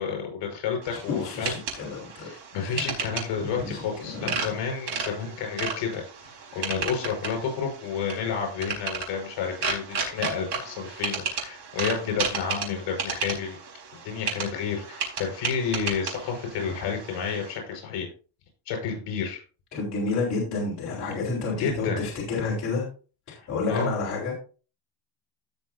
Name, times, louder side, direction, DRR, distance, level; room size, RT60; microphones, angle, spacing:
voice 1, 0.0-1.6 2.2-13.6 14.0-18.1 18.7-19.4 21.5-22.0 23.7-23.9, left 6 dB, 60° left, 2 dB, 5.6 m, -30 dB
sound 1, 0.8-17.6, right 5 dB, 60° right, 4.7 m, -34 dB
voice 2, 1.1-2.3 2.6-2.9 3.4-4.5 19.7-22.9 23.3-24.4, left 3 dB, 35° left, -5 dB, 4.0 m, -30 dB
17.0 x 6.2 x 2.7 m, 0.37 s
cardioid pair, 170°, 47 cm